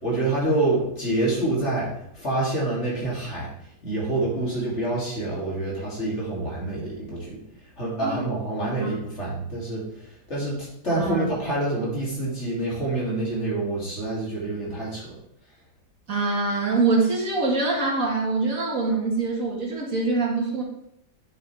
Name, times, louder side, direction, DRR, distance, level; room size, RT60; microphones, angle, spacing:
voice 1, 0.0-3.5 3.8-7.4 7.8-10.6 10.8-15.2, right 2 dB, 40° left, -5 dB, 3.1 m, -27 dB
voice 2, 10.9-11.2 16.1-20.6, right 3 dB, 55° right, -1 dB, 2.0 m, -24 dB
9.2 x 7.8 x 3.4 m, 0.77 s
omnidirectional pair, 1.8 m